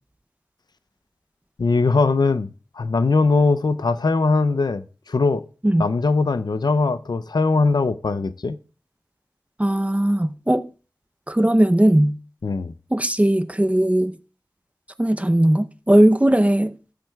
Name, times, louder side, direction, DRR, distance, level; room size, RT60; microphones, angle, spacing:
voice 1, 1.6-5.5 5.8-8.6 12.4-12.7, left 3 dB, 70° left, 0.5 m, -20 dB
voice 2, 9.6-10.7 11.3-12.2 12.9-14.2 15.0-16.7, right 1 dB, 20° right, 0.6 m, -18 dB
17.5 x 7.6 x 2.3 m
wide cardioid pair, 40°, 7 cm